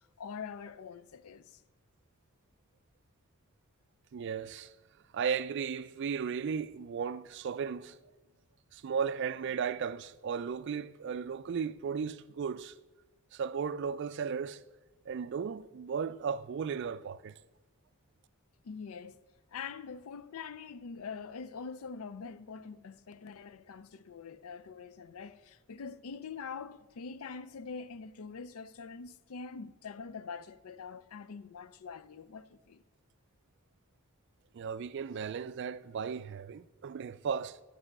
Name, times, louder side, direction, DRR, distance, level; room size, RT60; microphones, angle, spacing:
voice 1, 0.2-1.6 18.6-19.2 19.5-32.8, left 5 dB, 80° left, 0.5 m, -44 dB
voice 2, 4.1-4.7 5.1-8.0 8.7-12.7 13.3-14.6 15.1-17.3 34.5-37.6, right 6 dB, 55° right, 0.3 m, -35 dB
12.0 x 5.4 x 5.9 m
head